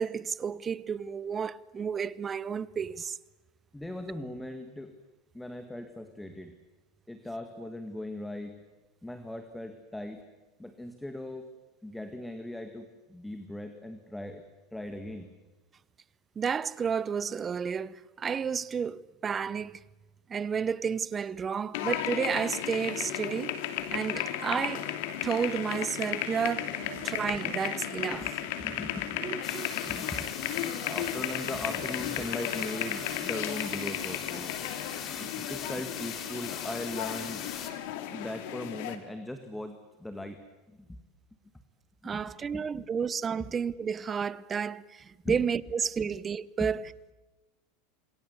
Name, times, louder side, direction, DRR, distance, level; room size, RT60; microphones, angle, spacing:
voice 1, 0.0-3.2 16.4-19.8 20.3-23.5 23.9-24.9 25.2-26.7 27.0-28.4 29.2-30.1 35.1-35.5 42.0-46.8, right 6 dB, 25° right, 0.8 m, -32 dB
voice 2, 3.7-4.9 5.3-6.6 7.1-8.6 9.0-10.3 10.6-11.5 11.8-14.4 14.7-15.3 28.2-28.3 28.6-29.4 29.8-30.3 30.6-34.5 35.5-37.5 38.1-40.4 40.8-41.0 42.0-42.9 43.4-43.5 45.2-45.4 46.0-46.1 46.6-46.7, left 1 dB, 5° left, 1.9 m, -39 dB
sound 1, 21.7-39.0, left 11 dB, 70° left, 2.7 m, -34 dB
sound 2, 25.3-34.4, right 8 dB, 65° right, 5.8 m, -50 dB
sound 3, 29.4-37.7, left 8 dB, 40° left, 3.4 m, -41 dB
27.0 x 22.5 x 8.2 m
supercardioid pair, 125°, 0 cm